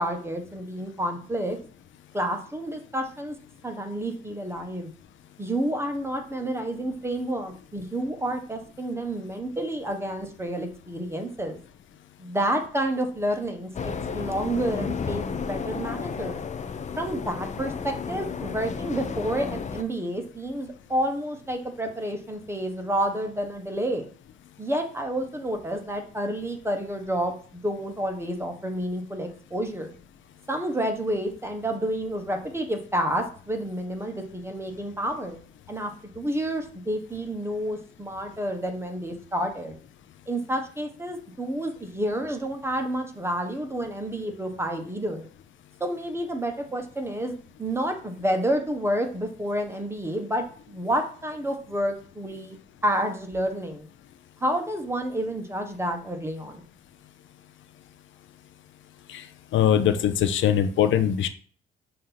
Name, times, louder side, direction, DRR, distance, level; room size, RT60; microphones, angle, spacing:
voice 1, 0.0-1.6 2.1-3.3 3.6-4.9 5.4-11.6 12.2-13.7 14.1-16.4 17.0-24.1 24.6-29.9 30.5-35.4 35.7-39.8 40.3-45.2 45.8-52.6 52.8-53.9 54.4-56.6, right 1 dB, 10° right, 4 dB, 1.4 m, -29 dB
sound 1, 13.7-19.8, left 5 dB, 35° left, 0.7 m, -32 dB
voice 2, 59.5-61.3, left 9 dB, 75° left, 9 dB, 0.7 m, -22 dB
6.4 x 3.0 x 5.6 m, 0.43 s
cardioid pair, 90°, 20 cm